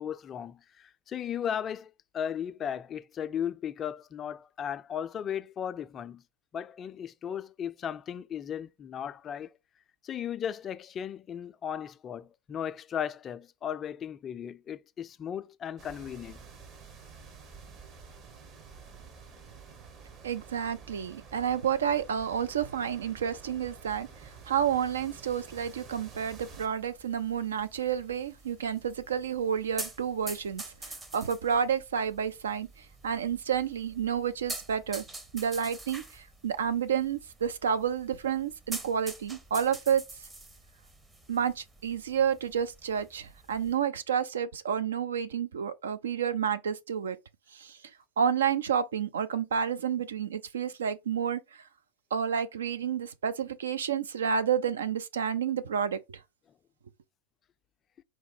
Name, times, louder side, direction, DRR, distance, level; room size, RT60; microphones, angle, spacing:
voice 1, 0.0-6.2 6.5-9.5 10.0-16.4, left 9 dB, 30° left, 0.3 m, -36 dB
sound 1, 15.8-26.7, right 5 dB, 35° right, 0.9 m, -50 dB
voice 2, 20.2-24.1 24.5-32.7 33.0-35.0 35.3-40.0 41.3-47.2 47.5-47.8 48.2-51.4 52.1-56.2, right 8 dB, 75° right, 0.5 m, -30 dB
sound 2, 26.3-43.7, right 2 dB, 15° right, 0.7 m, -46 dB
4.7 x 2.1 x 4.2 m
figure-of-eight pair, 90°, 0 cm